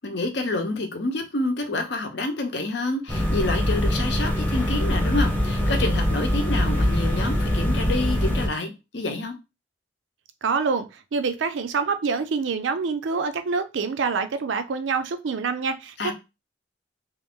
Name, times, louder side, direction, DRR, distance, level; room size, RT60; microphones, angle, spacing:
voice 1, 0.0-9.4 16.0-16.1, left 2 dB, 65° left, 0.7 m, -28 dB
sound 1, 3.1-8.5, equal, 10° left, 0.9 m, -23 dB
voice 2, 10.4-16.1, right 5 dB, 85° right, 0.5 m, -26 dB
3.0 x 2.5 x 3.5 m
head